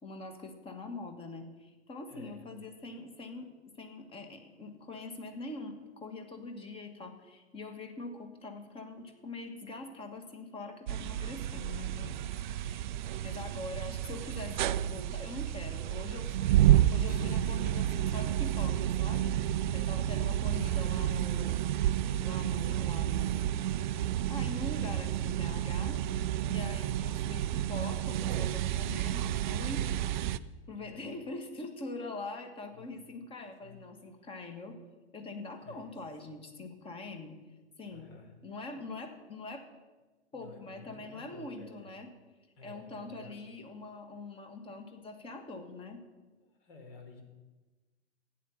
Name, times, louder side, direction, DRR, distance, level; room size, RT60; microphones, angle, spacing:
voice 1, 0.0-3.5 3.8-12.2 12.5-12.9 13.2-21.6 22.2-23.7 24.3-26.0 26.4-29.9 30.7-34.8 35.1-37.3 37.8-38.1 38.4-39.7 40.3-42.1 42.6-46.0, left 2 dB, 15° left, 7 dB, 1.7 m, -43 dB
voice 2, 2.1-2.5 12.6-13.2 19.9-20.4 26.5-27.0 29.6-30.1 30.4-31.1 32.7-33.0 33.6-33.8 35.6-36.0 37.8-38.3 40.3-41.9 42.6-43.5 46.4-47.2, left 3 dB, 55° left, 4 dB, 3.9 m, -53 dB
sound 1, 10.9-30.4, right 12 dB, 45° right, 0.5 m, -30 dB
sound 2, 17.1-20.8, left 6 dB, 35° left, 0.5 m, -52 dB
14.0 x 9.5 x 7.1 m, 1.2 s
hypercardioid pair, 120°, 34 cm